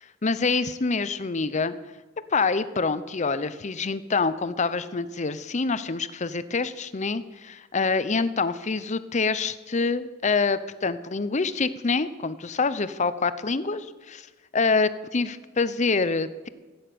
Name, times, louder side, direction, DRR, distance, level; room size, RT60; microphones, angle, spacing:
voice 1, 0.2-1.7 2.3-14.3 14.5-16.5, left 4 dB, 40° left, 14 dB, 0.7 m, -26 dB
15.5 x 9.7 x 6.9 m, 1.3 s
head